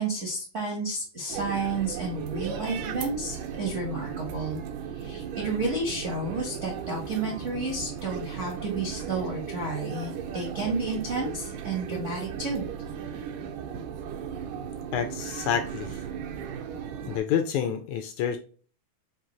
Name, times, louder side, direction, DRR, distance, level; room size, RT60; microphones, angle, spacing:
voice 1, 0.0-4.6 4.9-12.6, right 3 dB, 75° right, -3 dB, 0.7 m, -31 dB
sound 1, 1.3-17.2, right 7 dB, 90° right, 2.3 m, -36 dB
voice 2, 14.9-16.0 17.1-18.4, left 8 dB, 80° left, 7 dB, 1.7 m, -28 dB
5.8 x 2.7 x 2.9 m, 0.40 s
omnidirectional pair, 3.6 m